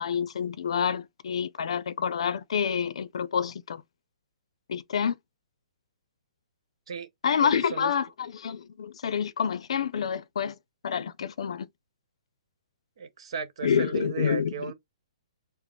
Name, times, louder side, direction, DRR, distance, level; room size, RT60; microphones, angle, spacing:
voice 1, 0.0-3.8 4.7-5.1 7.2-10.6 10.8-11.7 13.6-14.7, left 7 dB, 70° left, 0.5 m, -28 dB
voice 2, 7.5-7.9 13.0-14.7, right 6 dB, 65° right, 1.1 m, -35 dB
4.9 x 2.0 x 3.0 m
hypercardioid pair, 145°, 3 cm